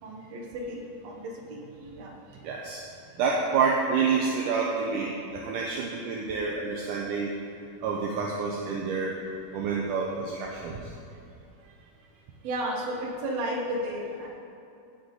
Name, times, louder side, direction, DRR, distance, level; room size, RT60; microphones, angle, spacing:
voice 1, 0.0-2.4 11.6-11.9 12.4-14.3, right 1 dB, 55° right, -1 dB, 2.1 m, -34 dB
voice 2, 2.4-2.8 3.2-7.3 7.8-9.1 9.5-10.9, right 5 dB, 75° right, -2 dB, 2.1 m, -28 dB
16.5 x 6.4 x 3.9 m, 2.7 s
omnidirectional pair, 4.4 m